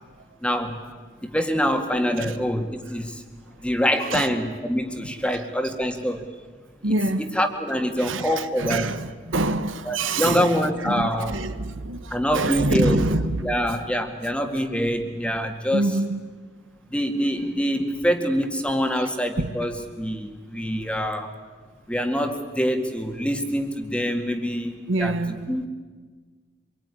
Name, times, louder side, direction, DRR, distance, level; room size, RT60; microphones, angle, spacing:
voice 1, 0.4-0.8 1.2-3.2 3.6-6.3 7.3-8.9 9.9-11.3 12.1-13.0 13.4-15.9 16.9-21.3 21.9-25.6, equal, 5° left, 2.0 m, -25 dB
voice 2, 5.0-5.4 6.8-7.4 7.9-13.6 15.7-16.2 18.9-19.1 19.4-19.6 20.8-20.9 24.9-25.5, right 2 dB, 80° right, 1.3 m, -26 dB
25.5 x 23.5 x 9.8 m
head